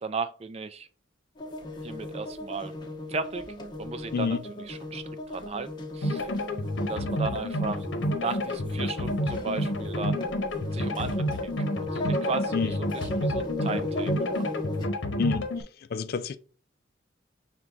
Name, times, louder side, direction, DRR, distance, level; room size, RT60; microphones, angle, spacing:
voice 1, 0.0-0.9 1.8-2.8 3.1-3.5 3.8-6.3 6.8-7.9 8.2-10.3 10.7-14.4, right 4 dB, 35° right, 0.4 m, -35 dB
sound 1, 1.4-14.9, left 1 dB, 25° left, 0.8 m, -36 dB
sound 2, 6.0-15.6, left 1 dB, 70° left, 0.8 m, -30 dB
voice 2, 15.2-15.5 15.9-16.4, left 5 dB, 55° left, 0.4 m, -28 dB
6.0 x 2.2 x 3.8 m
head